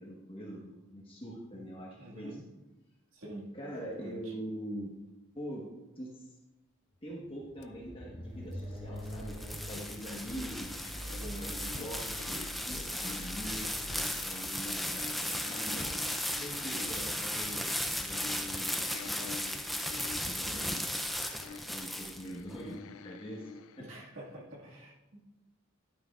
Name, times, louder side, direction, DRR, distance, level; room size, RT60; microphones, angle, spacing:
voice 1, 0.0-2.4 3.5-4.9 5.3-5.6 6.0-6.3 7.0-9.4 9.6-13.7 14.2-15.9 16.4-17.6 18.0-20.9 21.4-23.5 23.8-23.9, equal, 25° left, -3 dB, 1.3 m, -44 dB
voice 2, 2.0-2.5 3.1-4.3 11.1-11.5 23.8-25.2, right 1 dB, 65° right, -3 dB, 1.9 m, -46 dB
sound 1, 7.1-15.5, equal, 20° right, 1.4 m, -45 dB
sound 2, 7.6-7.7 8.8-23.8, left 6 dB, 85° left, 0.4 m, -49 dB
sound 3, 8.7-22.6, equal, ahead, 0.4 m, -36 dB
11.0 x 9.2 x 2.4 m, 1.1 s
head